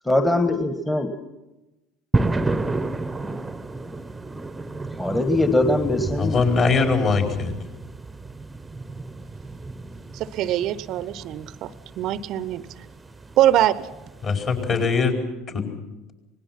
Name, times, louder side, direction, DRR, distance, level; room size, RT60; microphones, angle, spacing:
voice 1, 0.0-1.1 4.9-6.4, left 2 dB, 10° left, 7 dB, 1.5 m, -21 dB
sound 1, 2.1-15.0, right 2 dB, 15° right, 1.0 m, -31 dB
voice 2, 6.2-7.5 14.2-15.2 15.5-15.7, left 4 dB, 40° left, 3 dB, 4.6 m, -21 dB
voice 3, 10.1-12.6 13.4-13.7, right 12 dB, 50° right, 17 dB, 0.8 m, -23 dB
26.0 x 19.5 x 5.9 m, 1.0 s
figure-of-eight pair, 70°, 0 cm